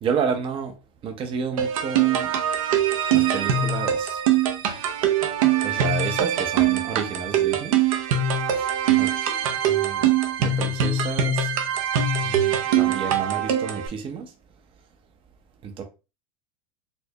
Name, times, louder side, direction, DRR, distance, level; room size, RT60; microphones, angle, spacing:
voice 1, 0.0-0.7 1.0-2.3 3.1-4.2 5.6-7.8 8.5-8.7 9.0-9.1 9.7-10.0 10.4-11.5 12.2-14.3 15.6-15.8, right 6 dB, 30° right, 0.6 m, -30 dB
sound 1, 1.6-13.9, right 8 dB, 80° right, 0.7 m, -22 dB
4.3 x 2.1 x 2.7 m
supercardioid pair, 110°, 17 cm